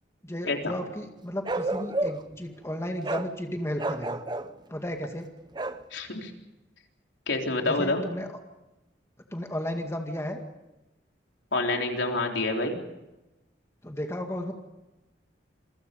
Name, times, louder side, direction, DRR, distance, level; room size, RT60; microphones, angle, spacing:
voice 1, 0.2-4.2 4.7-5.3 7.6-8.3 9.3-10.4 13.8-14.5, equal, 15° left, 4 dB, 2.1 m, -34 dB
Bark, 1.4-2.3 3.0-3.3 3.8-4.5 5.5-5.8, right 2 dB, 25° right, 0.9 m, -30 dB
voice 2, 5.9-6.3 7.3-8.0 11.5-12.8, left 2 dB, 85° left, 2 dB, 3.9 m, -27 dB
28.0 x 23.0 x 5.4 m, 1.0 s
head